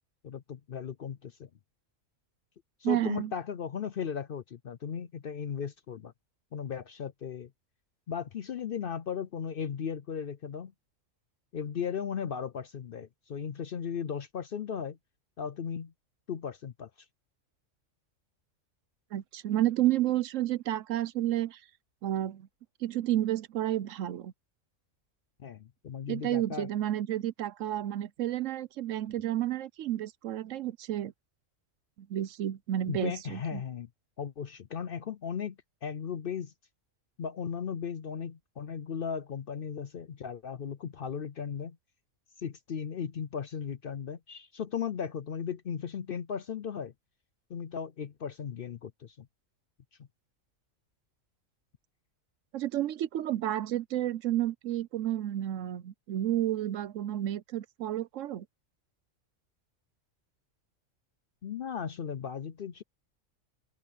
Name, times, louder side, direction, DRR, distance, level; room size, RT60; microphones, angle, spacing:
voice 1, 0.2-1.5 2.8-6.1 6.5-7.5 8.1-10.7 11.5-15.0 15.4-15.9 16.3-16.9 25.4-26.7 32.9-33.9 34.2-35.6 35.8-36.5 37.2-41.8 42.4-46.9 47.5-49.3 61.4-62.8, left 7 dB, 55° left, 0.7 m, -36 dB
voice 2, 2.8-3.3 19.1-21.6 22.0-22.5 22.8-24.3 26.1-31.1 32.0-33.6 52.5-58.5, right 13 dB, 70° right, 1.0 m, -31 dB
open air
omnidirectional pair, 1.4 m